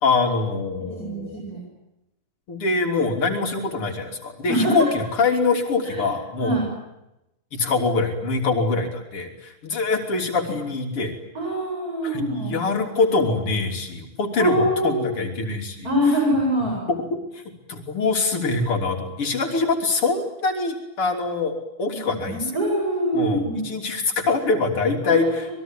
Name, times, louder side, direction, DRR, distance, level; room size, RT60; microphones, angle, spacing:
voice 1, 0.0-1.4 2.5-6.6 7.5-11.2 12.0-16.2 16.9-17.4 17.7-21.5 21.8-22.5 23.1-25.5, left 3 dB, 85° left, 4 dB, 4.2 m, -24 dB
voice 2, 1.0-1.6 4.5-4.9 5.8-6.0 6.4-6.7 11.3-12.5 14.4-15.2 15.8-16.8 22.2-23.7 25.0-25.3, equal, 40° right, -1 dB, 8.4 m, -24 dB
27.0 x 22.0 x 9.1 m, 0.90 s
omnidirectional pair, 2.4 m